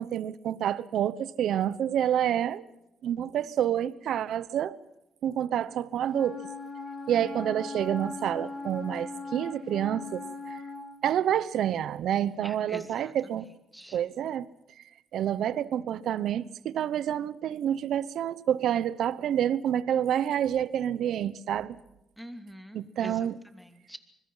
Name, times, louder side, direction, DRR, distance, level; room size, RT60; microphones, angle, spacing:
voice 1, 0.0-2.7 3.0-4.8 5.2-6.5 7.1-10.6 11.0-13.5 13.9-14.5 15.1-21.8 22.7-23.4, right 10 dB, 75° right, 17 dB, 1.0 m, -28 dB
Wind instrument woodwind instrument, 6.1-10.9, left 3 dB, 40° left, 5.2 m, -39 dB
voice 2, 12.4-13.4 13.7-14.0 22.2-23.2 23.5-24.0, equal, ahead, 7 dB, 2.8 m, -44 dB
25.5 x 21.5 x 5.7 m, 0.87 s
cardioid pair, 90°, 0 cm